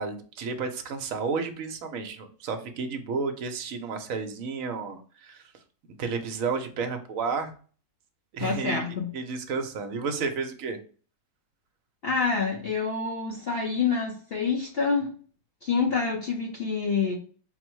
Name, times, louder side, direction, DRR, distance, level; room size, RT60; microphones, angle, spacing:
voice 1, 0.0-5.5 6.0-7.5 8.3-8.8 9.1-10.8, right 5 dB, 65° right, 6 dB, 1.0 m, -32 dB
voice 2, 8.4-9.1 12.0-15.1 15.6-17.1, left 5 dB, 55° left, -1 dB, 0.7 m, -27 dB
4.1 x 2.0 x 4.5 m, 0.41 s
omnidirectional pair, 1.6 m